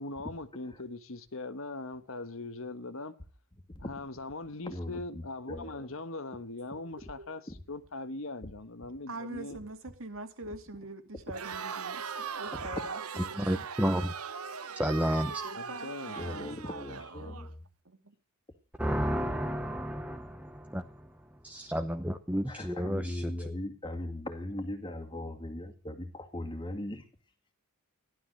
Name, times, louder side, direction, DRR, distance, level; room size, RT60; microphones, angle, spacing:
voice 1, 0.0-3.2 3.8-9.6 15.5-16.6, left 2 dB, 65° left, 1.3 m, -41 dB
voice 2, 4.6-5.9 7.5-7.6 10.5-10.6 12.5-12.8 16.2-17.6 22.5-27.1, left 1 dB, 20° left, 2.3 m, -39 dB
voice 3, 9.1-12.0 12.4-13.4 15.4-17.4 17.9-18.0, right 2 dB, 65° right, 2.5 m, -43 dB
Crowd, 11.3-17.5, right 6 dB, 85° right, 1.1 m, -40 dB
voice 4, 13.4-14.1 14.8-15.4 18.8-21.1 21.4-23.3, equal, 5° right, 0.8 m, -31 dB
15.0 x 12.0 x 6.6 m
head